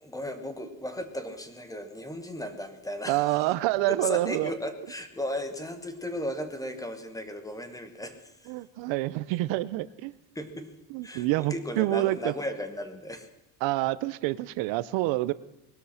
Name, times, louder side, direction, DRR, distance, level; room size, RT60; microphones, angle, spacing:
voice 1, 0.0-3.2 3.9-8.5 10.3-10.7 11.0-13.3, left 1 dB, 10° left, 8 dB, 1.3 m, -35 dB
voice 2, 3.1-4.5 8.5-10.1 10.9-12.3 13.6-15.3, right 17 dB, 85° right, 17 dB, 0.8 m, -27 dB
20.0 x 12.0 x 5.7 m, 0.96 s
cardioid pair, 160°, 44 cm